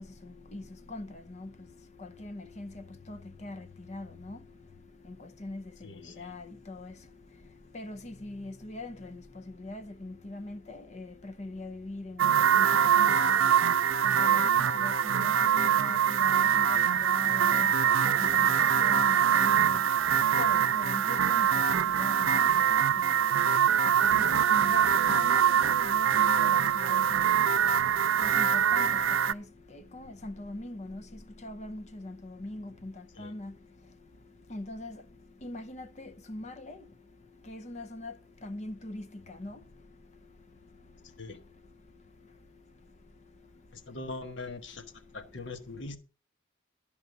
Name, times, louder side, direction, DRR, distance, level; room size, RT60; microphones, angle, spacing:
voice 1, 0.0-44.0 44.7-46.0, left 2 dB, 35° left, 0.7 m, -43 dB
voice 2, 5.8-6.3 33.2-33.3 41.2-41.4 43.7-44.8 45.1-46.0, left 3 dB, 65° left, 1.5 m, -41 dB
sound 1, 12.2-29.3, right 8 dB, 90° right, 0.5 m, -24 dB
12.5 x 5.5 x 6.6 m
head